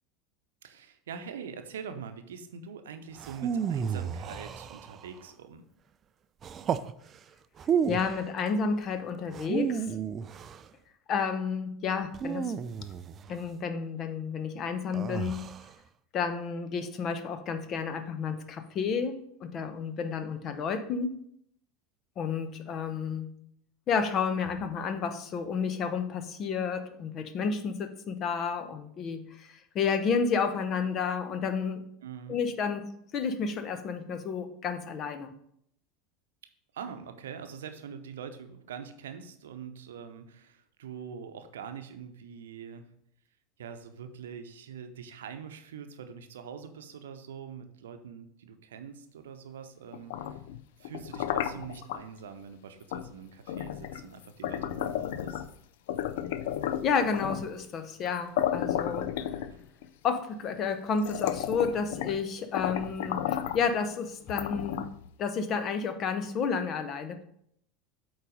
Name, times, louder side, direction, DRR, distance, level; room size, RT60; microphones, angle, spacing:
voice 1, 0.6-5.7 32.0-32.4 36.7-42.9 43.6-50.4 50.8-55.5 59.5-59.6, right 7 dB, 75° right, 8 dB, 0.7 m, -44 dB
sound 1, 3.2-5.2 6.4-6.9 7.6-8.3 9.3-10.7 12.1-13.4 14.9-15.7, right 7 dB, 35° right, 0.4 m, -32 dB
voice 2, 7.9-9.9 11.1-12.5 13.3-15.4 16.1-21.2 22.2-23.3 23.9-31.8 32.3-35.3 56.8-59.3 60.0-63.2 63.5-64.8 65.2-67.2, left 5 dB, 40° left, 9 dB, 0.9 m, -31 dB
sound 2, 49.9-52.0 52.9-53.1 53.5-55.5 55.9-57.5 58.1-58.2 58.4-59.8 60.5-60.6 61.0-62.2 62.5-63.7 64.3-65.1, left 10 dB, 65° left, 0.4 m, -33 dB
8.2 x 4.0 x 5.2 m, 0.70 s
figure-of-eight pair, 80°, 0 cm